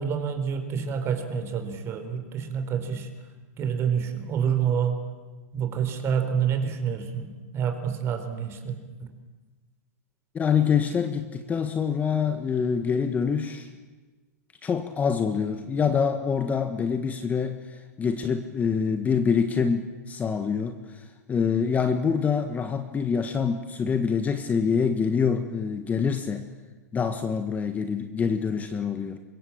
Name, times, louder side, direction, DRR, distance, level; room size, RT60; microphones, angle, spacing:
voice 1, 0.0-3.1 3.6-5.0 5.5-9.1, right 7 dB, 30° right, 8 dB, 4.2 m, -28 dB
voice 2, 10.3-13.7 14.6-26.5 26.9-29.2, left 6 dB, 20° left, 8 dB, 1.5 m, -26 dB
25.5 x 22.0 x 8.8 m, 1.3 s
hypercardioid pair, 130°, 9 cm